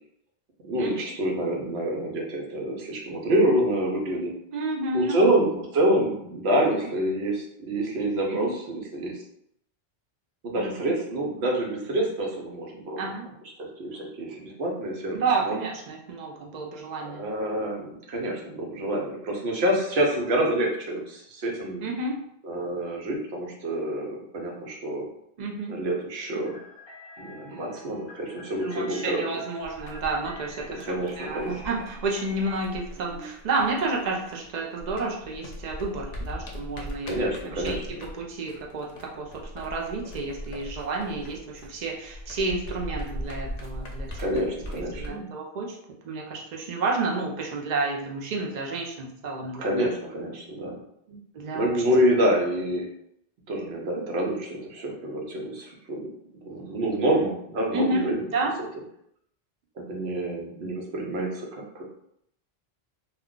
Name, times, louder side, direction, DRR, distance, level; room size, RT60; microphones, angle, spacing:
voice 1, 0.6-4.3 4.9-9.2 10.4-13.0 13.8-15.6 17.0-21.9 22.4-25.0 25.7-26.6 27.2-29.2 30.9-31.6 33.1-33.3 37.0-38.0 44.2-45.3 49.6-50.8 51.1-51.2 51.5-52.9 53.5-56.1 56.4-58.2 59.9-61.8, right 1 dB, 85° right, -1 dB, 1.0 m, -27 dB
voice 2, 4.5-5.3 6.6-6.9 8.3-8.5 10.6-11.0 13.0-13.3 15.1-17.3 21.8-22.2 25.4-25.8 27.5-28.0 28.6-37.2 37.5-37.8 38.1-44.3 44.7-45.8 46.0-49.7 51.3-51.8 57.7-58.6, right 3 dB, 50° right, 0 dB, 0.6 m, -30 dB
sound 1, 26.4-32.6, left 1 dB, 35° left, 0.5 m, -47 dB
sound 2, 29.6-34.5 34.8-45.1, equal, 75° left, 0.8 m, -39 dB
2.3 x 2.2 x 3.7 m, 0.74 s
omnidirectional pair, 1.1 m